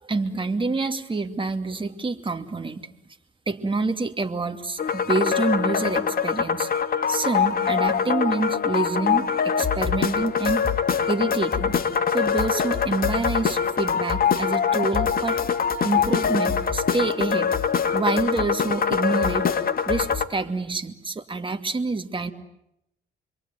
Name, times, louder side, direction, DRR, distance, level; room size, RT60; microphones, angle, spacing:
voice 1, 0.0-2.8 3.5-6.7 7.1-10.6 11.1-11.8 12.1-15.4 15.8-17.6 17.9-19.5 19.9-22.3, right 3 dB, 25° right, 7 dB, 2.5 m, -27 dB
sound 1, 4.8-20.2, left 7 dB, 50° left, 2.1 m, -23 dB
28.0 x 22.5 x 9.3 m, 0.80 s
cardioid pair, 90°, 20 cm